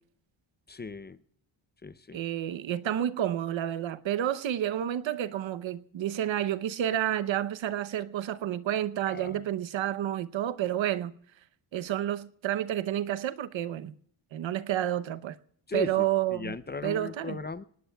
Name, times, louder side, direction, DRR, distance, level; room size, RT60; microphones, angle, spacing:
voice 1, 0.7-1.2 1.8-2.2 9.1-9.4 15.7-17.6, left 4 dB, 25° left, 0.6 m, -37 dB
voice 2, 2.1-11.1 11.7-13.9 14.3-15.4 15.7-16.6 16.8-17.4, right 11 dB, 80° right, 0.9 m, -30 dB
26.5 x 19.0 x 2.3 m
wide cardioid pair, 125°, 45 cm